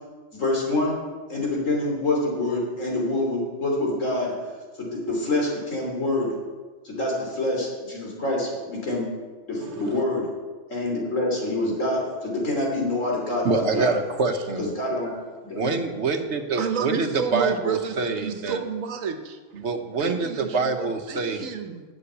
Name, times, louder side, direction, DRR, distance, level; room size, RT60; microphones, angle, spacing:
voice 1, 0.3-1.0 1.3-4.3 4.8-6.3 6.8-9.1 9.5-10.3 10.7-13.9 14.6-15.1 15.4-15.7, left 2 dB, 75° left, -2 dB, 3.4 m, -26 dB
voice 2, 9.6-9.9 13.4-14.7 15.5-18.6 19.5-21.5, right 4 dB, 60° right, 7 dB, 1.2 m, -26 dB
voice 3, 16.6-19.4 20.0-21.8, right 6 dB, 90° right, 7 dB, 1.4 m, -30 dB
9.9 x 7.0 x 8.1 m, 1.4 s
omnidirectional pair, 1.3 m